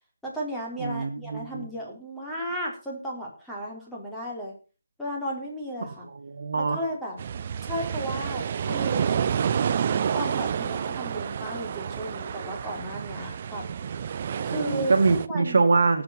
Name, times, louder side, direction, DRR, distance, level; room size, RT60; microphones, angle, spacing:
voice 1, 0.2-4.5 5.0-6.0 6.5-7.2 7.6-9.1 10.1-13.6 14.4-14.9 15.3-15.6, equal, 5° left, -4 dB, 4.4 m, -34 dB
voice 2, 0.8-1.7 5.8-6.8 14.5-16.0, right 4 dB, 55° right, 6 dB, 2.2 m, -24 dB
sound 1, 7.2-15.3, right 7 dB, 35° right, 0.7 m, -29 dB
18.5 x 8.1 x 6.0 m, 0.36 s
figure-of-eight pair, 160°, 0 cm